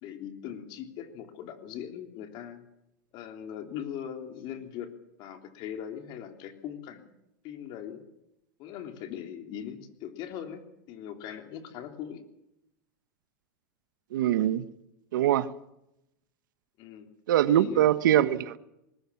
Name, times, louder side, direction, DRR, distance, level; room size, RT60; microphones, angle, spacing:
voice 1, 0.0-2.6 3.1-4.9 5.2-7.1 7.4-8.0 8.6-12.2 16.8-17.1 17.5-17.9, left 9 dB, 45° left, 6 dB, 3.5 m, -40 dB
voice 2, 14.1-14.7 15.1-15.5 17.3-18.6, right 12 dB, 80° right, 14 dB, 1.2 m, -23 dB
21.5 x 19.5 x 7.2 m, 0.86 s
supercardioid pair, 130°, 10 cm